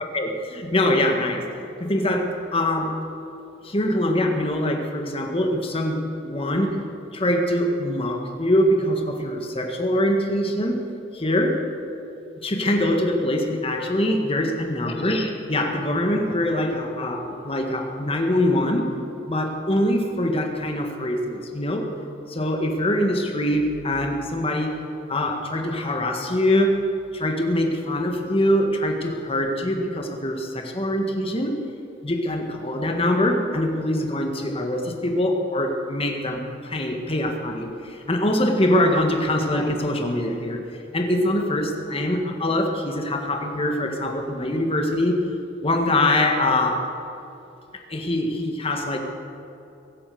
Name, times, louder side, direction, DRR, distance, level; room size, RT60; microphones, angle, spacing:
voice 1, 0.1-3.0 3.6-6.8 7.1-11.6 12.4-18.9 19.3-21.9 22.3-24.8 25.1-26.8 27.1-31.6 32.0-40.6 40.9-45.2 45.6-46.9 47.9-49.0, left 1 dB, 30° left, 3 dB, 1.8 m, -23 dB
23.0 x 8.7 x 7.0 m, 2.8 s
head